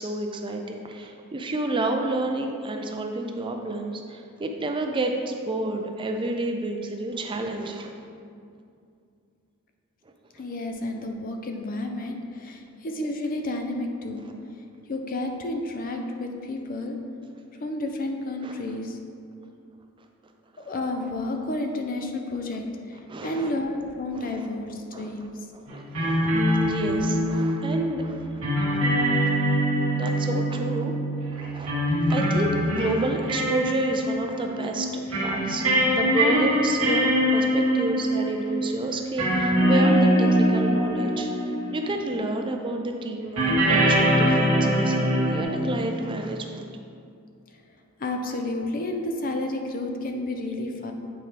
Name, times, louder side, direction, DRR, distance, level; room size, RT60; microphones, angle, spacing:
voice 1, 0.0-7.9 14.2-14.3 18.4-18.6 20.6-20.7 23.1-23.5 24.1-24.5 24.9-25.1 25.5-29.3 29.9-30.9 31.3-31.7 32.1-46.7, right 2 dB, 25° right, 3 dB, 0.4 m, -30 dB
voice 2, 10.3-14.3 14.9-17.0 17.6-19.0 20.6-25.3 26.2-26.7 48.0-50.9, left 2 dB, 40° left, 4 dB, 0.5 m, -31 dB
sound 1, 25.7-42.1 43.4-45.4, equal, 80° right, 1.6 m, -23 dB
8.4 x 4.4 x 3.3 m, 2.4 s
head